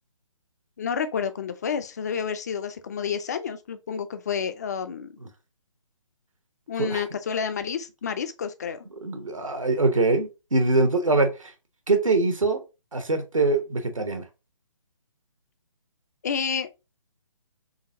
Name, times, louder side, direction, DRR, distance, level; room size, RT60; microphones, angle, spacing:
voice 1, 0.8-5.1 6.7-8.8 16.2-16.7, left 7 dB, 30° left, 0.4 m, -29 dB
voice 2, 9.0-11.5 11.9-12.6 12.9-14.2, right 3 dB, 75° right, 0.9 m, -23 dB
3.9 x 3.3 x 2.6 m
figure-of-eight pair, 140°, 17 cm